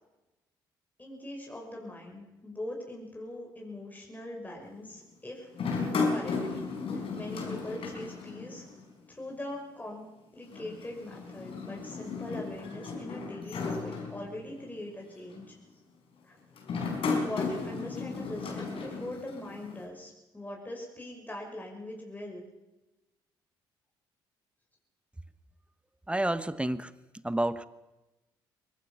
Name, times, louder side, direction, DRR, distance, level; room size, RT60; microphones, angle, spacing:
voice 1, 1.0-6.6 6.9-8.6 9.1-10.1 10.3-15.5 16.2-16.4 17.0-22.5, left 1 dB, 15° left, 0 dB, 5.6 m, -42 dB
sound 1, 5.5-8.9 9.2-9.3 10.5-14.7 15.3-15.6 16.6-19.9, left 4 dB, 55° left, 5.1 m, -34 dB
voice 2, 26.1-26.9 27.2-27.7, right 1 dB, 10° right, 15 dB, 1.2 m, -29 dB
24.0 x 19.5 x 5.7 m, 1.0 s
hypercardioid pair, 50°, 11 cm